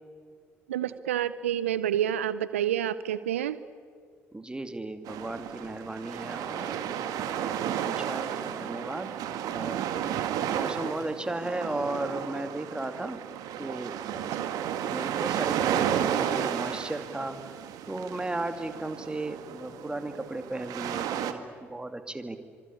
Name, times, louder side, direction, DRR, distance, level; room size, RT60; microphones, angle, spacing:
voice 1, 0.7-3.6 14.3-14.6, right 11 dB, 80° right, 15 dB, 0.6 m, -29 dB
voice 2, 4.3-9.1 9.5-9.8 10.5-13.2 13.6-17.4 17.9-22.4, right 2 dB, 15° right, 8 dB, 2.6 m, -35 dB
sound 1, 5.1-21.3, right 9 dB, 60° right, 1.9 m, -32 dB
25.5 x 24.5 x 8.6 m, 2.1 s
hypercardioid pair, 55°, 7 cm